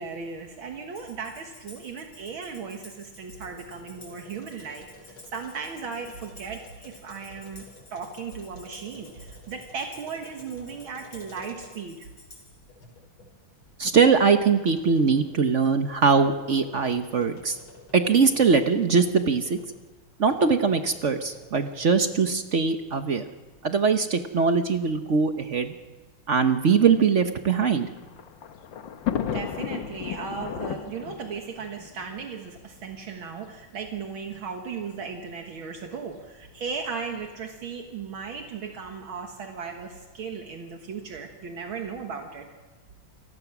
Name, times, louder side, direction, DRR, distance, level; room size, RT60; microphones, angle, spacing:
voice 1, 0.0-7.6 7.9-12.1 29.3-42.5, right 5 dB, 70° right, 3 dB, 2.3 m, -36 dB
Tambourine, 1.0-12.7, left 2 dB, 50° left, 6.6 m, -52 dB
sound 1, 3.2-12.0 12.5-19.8 20.3-22.4, left 2 dB, 80° left, 6.0 m, -51 dB
voice 2, 13.8-17.6 17.9-19.6 20.2-23.3 23.6-25.7 26.3-27.9, right 5 dB, 50° right, 8 dB, 0.9 m, -22 dB
Thunder, 27.6-32.9 33.8-33.9 34.1-34.2 35.3-35.6, left 9 dB, 65° left, 1.7 m, -34 dB
27.5 x 19.0 x 6.1 m, 1.3 s
omnidirectional pair, 2.3 m